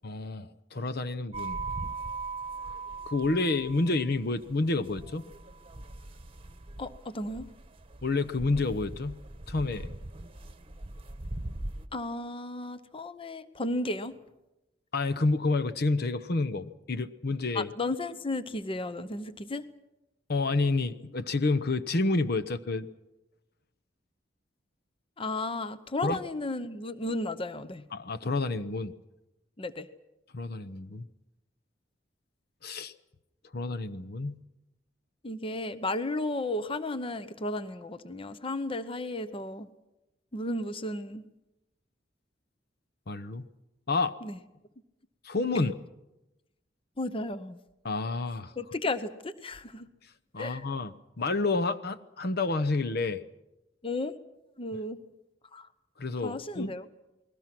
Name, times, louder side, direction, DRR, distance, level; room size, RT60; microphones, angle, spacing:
voice 1, 0.0-1.6 3.1-5.2 8.0-9.2 9.5-9.9 14.9-17.7 20.3-22.9 26.0-26.2 27.9-28.9 30.3-31.1 32.6-32.9 33.5-34.4 43.1-43.5 43.9-44.1 45.2-45.7 47.8-48.5 50.3-53.2 56.0-56.7, left 3 dB, 60° left, 10 dB, 0.9 m, -29 dB
sound 1, 1.3-11.9, right 3 dB, 30° right, 1.1 m, -40 dB
voice 2, 6.8-7.5 11.9-14.2 17.5-19.7 25.2-27.9 29.6-29.9 35.2-39.7 40.3-41.2 44.2-44.4 45.5-45.7 47.0-47.6 48.6-49.9 50.4-50.6 53.8-54.2 54.6-55.0 55.5-55.7 56.2-56.9, left 2 dB, 30° left, 13 dB, 0.8 m, -34 dB
29.5 x 20.5 x 6.1 m, 0.96 s
head